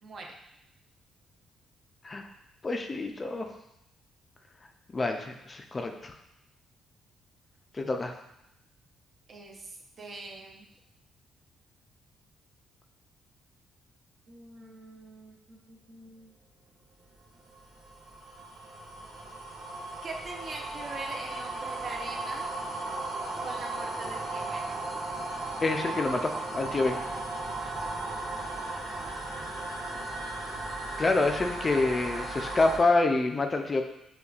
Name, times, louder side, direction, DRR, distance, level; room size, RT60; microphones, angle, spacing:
voice 1, 2.6-3.5 4.9-6.1 7.7-8.1 25.6-27.0 31.0-33.8, left 3 dB, 30° left, 4 dB, 0.4 m, -27 dB
voice 2, 9.3-10.7 14.3-16.3 20.0-22.5 23.4-24.7 27.4-27.8, right 3 dB, 50° right, 1 dB, 0.6 m, -43 dB
sound 1, 17.2-32.8, right 2 dB, 75° right, 1.1 m, -36 dB
5.3 x 2.2 x 2.4 m, 0.82 s
cardioid pair, 90°, 0 cm